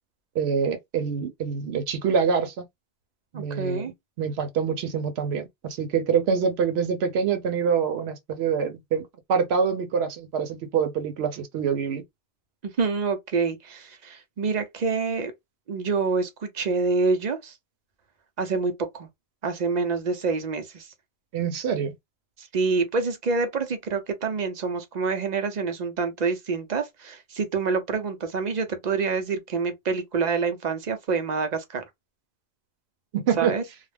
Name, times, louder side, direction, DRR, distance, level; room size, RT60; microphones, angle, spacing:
voice 1, 0.3-2.6 3.3-3.9 4.2-12.0 21.3-21.9 33.1-33.5, right 6 dB, 90° right, 0.8 m, -25 dB
voice 2, 3.3-3.9 12.6-15.3 15.7-17.5 18.4-19.1 19.4-20.9 22.4-31.8 33.4-33.6, right 4 dB, 50° right, 0.6 m, -27 dB
2.3 x 2.0 x 3.2 m
omnidirectional pair, 1.0 m